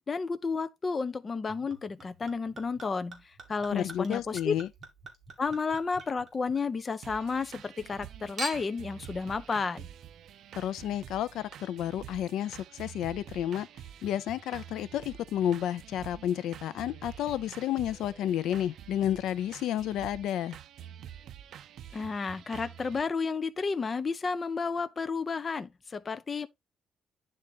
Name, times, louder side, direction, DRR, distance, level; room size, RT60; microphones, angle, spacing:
voice 1, 0.1-3.2 3.5-4.6 5.4-9.9 21.9-26.5, left 4 dB, 25° left, 0.5 m, -32 dB
Chink clink / Liquid, 1.5-7.0 7.3-8.0 8.4-8.9 9.6-9.7, right 2 dB, 25° right, 2.2 m, -45 dB
voice 2, 3.7-4.7 10.6-13.7 14.0-20.6, left 11 dB, 80° left, 0.5 m, -31 dB
sound 1, 7.0-23.0, right 10 dB, 65° right, 0.5 m, -48 dB
9.7 x 3.8 x 3.6 m
cardioid pair, 155°, 0 cm